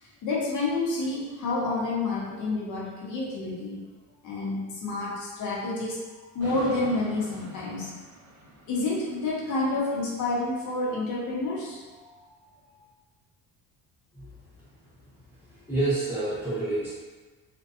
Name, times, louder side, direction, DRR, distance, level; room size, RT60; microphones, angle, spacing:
voice 1, 0.0-3.8 4.2-6.0 6.3-7.9 8.7-12.3, left 2 dB, 55° left, -5 dB, 0.7 m, -29 dB
sound 1, 6.4-11.8, right 1 dB, 55° right, 0.6 m, -45 dB
voice 2, 15.5-16.9, right 2 dB, 5° right, -11 dB, 0.8 m, -28 dB
2.6 x 2.1 x 2.4 m, 1.3 s
cardioid pair, 170°, 36 cm